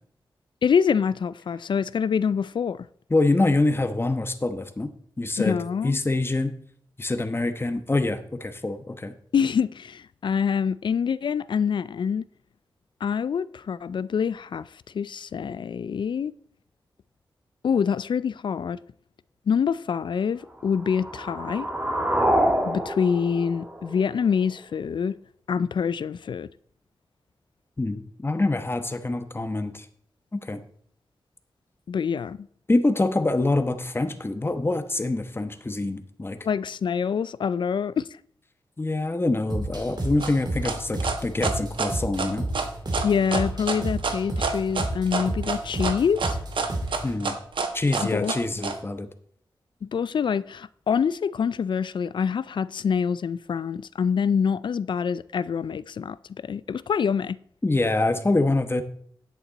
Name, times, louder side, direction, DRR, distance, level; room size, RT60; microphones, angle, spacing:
voice 1, 0.6-2.8 5.4-6.0 9.3-12.2 13.0-14.7 14.9-16.3 17.6-18.8 19.5-21.7 22.6-25.2 25.5-26.5 31.9-32.5 36.4-38.1 43.0-46.4 48.1-48.3 49.8-56.2 56.4-57.4, left 6 dB, 65° left, 0.3 m, -25 dB
voice 2, 3.1-4.9 5.2-5.6 5.8-6.5 7.0-9.1 27.8-29.9 30.3-30.6 32.7-36.4 38.8-42.5 47.0-47.3 47.7-49.1 57.6-58.8, left 2 dB, 30° left, 1.0 m, -25 dB
sound 1, 20.6-24.6, equal, 20° right, 1.9 m, -27 dB
sound 2, 39.5-47.2, right 1 dB, 55° right, 2.3 m, -32 dB
sound 3, 40.2-48.7, right 4 dB, 75° right, 1.2 m, -28 dB
10.0 x 8.2 x 4.0 m
cardioid pair, 60°, 8 cm